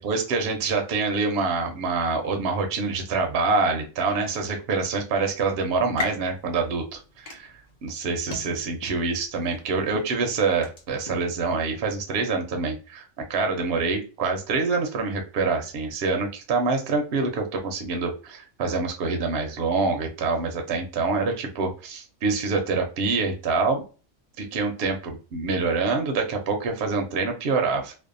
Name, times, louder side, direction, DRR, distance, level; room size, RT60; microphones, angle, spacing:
voice 1, 0.0-23.8 24.4-27.9, right 4 dB, 65° right, 4 dB, 0.7 m, -26 dB
sound 1, 5.6-11.3, left 2 dB, 45° left, 0.5 m, -40 dB
2.6 x 2.0 x 2.4 m, 0.34 s
omnidirectional pair, 1.3 m